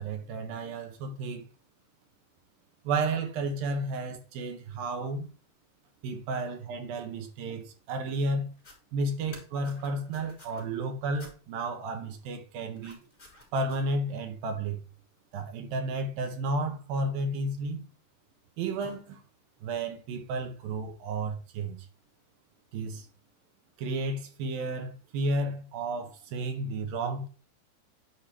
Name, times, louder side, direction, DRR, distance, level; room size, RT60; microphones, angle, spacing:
voice 1, 0.0-1.5 2.8-5.3 6.0-8.5 8.9-13.0 13.5-14.8 15.3-17.9 18.6-19.2 19.6-21.9 22.7-23.1 23.8-27.3, right 2 dB, 65° right, 2.9 m, -32 dB
sound 1, 8.5-8.8 9.2-10.6 11.2-11.3 12.7-13.9, left 2 dB, 25° left, 4.3 m, -52 dB
10.0 x 5.3 x 3.2 m
omnidirectional pair, 4.9 m